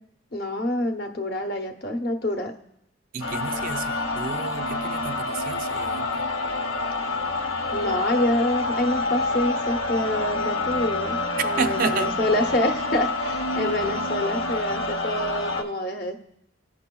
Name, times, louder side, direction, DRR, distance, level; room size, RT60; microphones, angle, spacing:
voice 1, 0.3-2.5 7.7-11.2 11.4-16.2, left 1 dB, 50° left, 5 dB, 0.9 m, -26 dB
voice 2, 3.1-6.3 11.4-12.1, right 5 dB, 45° right, 9 dB, 0.4 m, -30 dB
sound 1, 3.2-15.6, left 2 dB, 85° left, 0.8 m, -27 dB
15.5 x 5.6 x 2.3 m, 0.77 s
head